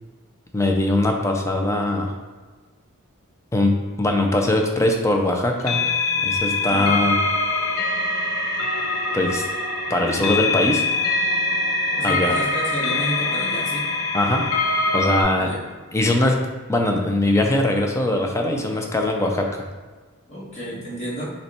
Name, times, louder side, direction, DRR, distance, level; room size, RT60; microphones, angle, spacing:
voice 1, 0.5-2.1 3.5-5.8 6.2-7.2 9.1-9.5 9.9-10.8 12.0-12.3 14.1-14.5 14.9-15.5 15.9-19.7, left 1 dB, 15° left, 2 dB, 0.4 m, -21 dB
sound 1, 5.6-15.2, left 2 dB, 70° left, 0.6 m, -23 dB
voice 2, 11.9-13.9 15.4-15.6 20.3-21.3, right 1 dB, 30° left, -7 dB, 1.4 m, -31 dB
5.5 x 2.2 x 4.2 m, 1.4 s
head